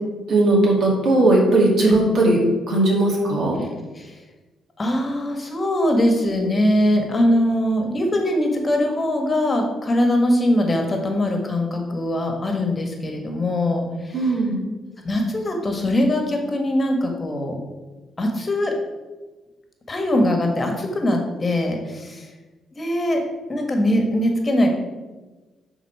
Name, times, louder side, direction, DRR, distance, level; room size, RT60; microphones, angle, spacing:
voice 1, 0.3-2.4 2.7-3.6 14.1-14.6, right 2 dB, 60° right, -2 dB, 2.6 m, -18 dB
voice 2, 4.8-14.3 15.0-17.6 18.2-18.7 19.9-22.3 22.8-23.2 23.5-24.7, left 1 dB, 30° left, 3 dB, 1.4 m, -21 dB
10.5 x 4.0 x 4.8 m, 1.2 s
cardioid pair, 90°, 0 cm